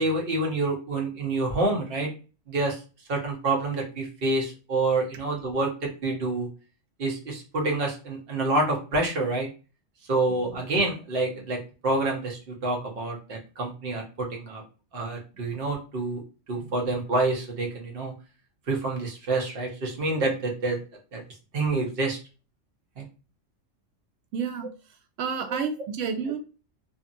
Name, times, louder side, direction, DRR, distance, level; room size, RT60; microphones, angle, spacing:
voice 1, 0.0-2.1 2.5-2.8 3.1-6.5 7.0-9.5 10.1-14.6 14.9-16.2 16.5-18.1 18.7-20.8 21.1-21.2 21.5-22.2 23.0-23.1, right 2 dB, 55° right, 0 dB, 1.0 m, -27 dB
voice 2, 24.3-24.7 25.2-26.4, right 6 dB, 90° right, 6 dB, 1.0 m, -30 dB
2.6 x 2.6 x 2.5 m, 0.34 s
omnidirectional pair, 1.3 m